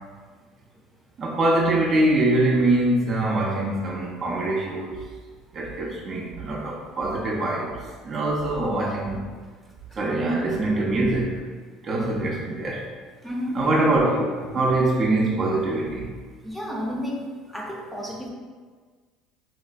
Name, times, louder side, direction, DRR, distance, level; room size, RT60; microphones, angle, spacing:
voice 1, 1.2-5.0 5.5-7.8 8.0-9.2 10.0-11.5 11.8-12.9 13.5-16.1, right 2 dB, 40° right, -2 dB, 0.4 m, -23 dB
voice 2, 13.2-13.7 16.4-17.2 17.5-18.3, equal, 5° left, -2 dB, 0.6 m, -31 dB
4.0 x 2.1 x 2.5 m, 1.5 s
supercardioid pair, 105°, 0 cm